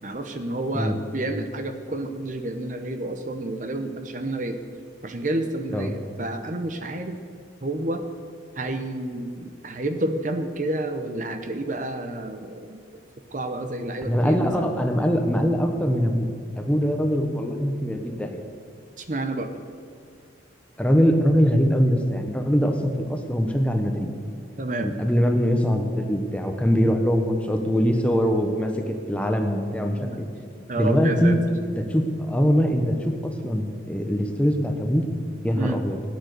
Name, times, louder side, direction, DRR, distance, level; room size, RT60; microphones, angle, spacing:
voice 1, 0.0-4.6 5.0-7.2 7.6-8.0 8.6-12.8 13.3-14.7 19.0-19.5 24.6-24.9 30.0-30.2 30.7-31.4 35.6-35.8, right 2 dB, 45° right, 7 dB, 0.8 m, -29 dB
voice 2, 14.1-16.3 16.6-18.4 20.8-24.1 24.8-30.2 30.8-35.0 35.4-36.0, equal, 5° left, 4 dB, 1.1 m, -22 dB
16.0 x 9.2 x 6.7 m, 2.3 s
head